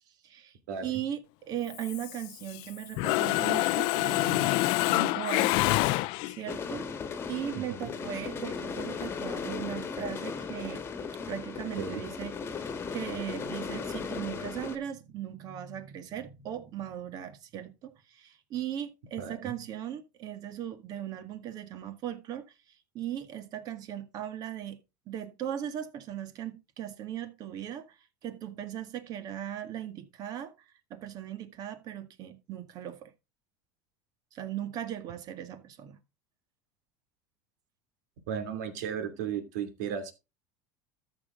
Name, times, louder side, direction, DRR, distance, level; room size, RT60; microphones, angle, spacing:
voice 1, 0.2-0.5 0.8-4.5 4.8-5.6 6.3-6.9 7.3-12.6 12.9-22.5 22.9-24.8 25.1-27.9 28.2-30.5 30.9-33.1 34.3-36.0, right 10 dB, 45° right, 1.9 m, -38 dB
Mechanisms, 1.7-2.7 3.0-6.5, left 20 dB, 65° left, 0.5 m, -27 dB
sound 1, 6.5-14.8, left 5 dB, 25° left, 1.6 m, -37 dB
voice 2, 7.6-7.9 11.8-12.0 19.2-19.5 38.3-40.1, right 7 dB, 90° right, 2.6 m, -35 dB
13.5 x 6.3 x 3.8 m
supercardioid pair, 135°, 9 cm